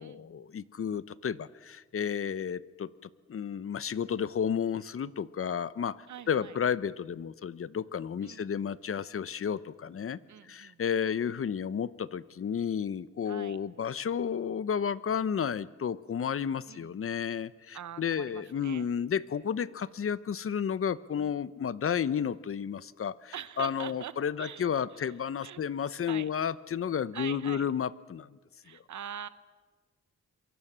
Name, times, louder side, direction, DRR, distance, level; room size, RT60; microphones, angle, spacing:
voice 1, 0.0-2.9 3.3-28.4 28.7-28.8, left 7 dB, 50° left, 17 dB, 0.8 m, -32 dB
voice 2, 6.1-6.6 8.2-8.5 10.3-10.8 13.2-13.6 16.7-17.0 17.7-18.9 23.3-24.1 24.4-25.1 25.4-25.6 26.1-26.3 27.1-27.7 28.6-29.3, right 9 dB, 75° right, 13 dB, 1.1 m, -43 dB
27.0 x 23.0 x 7.4 m, 1.3 s
cardioid pair, 100°, 29 cm